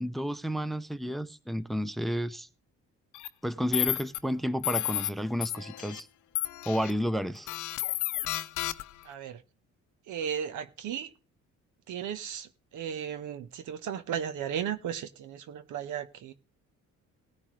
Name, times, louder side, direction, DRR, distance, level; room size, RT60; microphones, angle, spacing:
voice 1, 0.0-2.5 3.4-6.1 6.7-7.5, equal, ahead, 0.7 m, -31 dB
sound 1, 3.1-3.3 3.7-4.2 4.6-5.1 5.4-6.0 6.3-6.9 7.5-9.0, left 14 dB, 80° left, 0.7 m, -31 dB
voice 2, 9.0-9.4 10.1-11.1 11.9-16.3, right 8 dB, 85° right, 1.2 m, -35 dB
18.0 x 9.8 x 3.2 m
cardioid pair, 90°, 30 cm